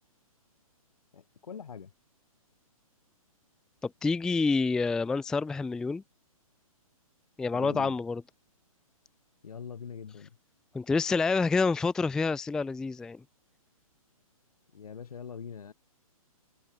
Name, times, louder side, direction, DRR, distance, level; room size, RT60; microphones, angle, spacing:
voice 1, 1.1-1.9 7.5-8.0 9.4-10.4 14.7-15.7, left 7 dB, 80° left, 6.0 m, -42 dB
voice 2, 3.8-6.0 7.4-8.2 10.7-13.2, left 4 dB, 5° left, 0.4 m, -28 dB
hypercardioid pair, 150°, 19 cm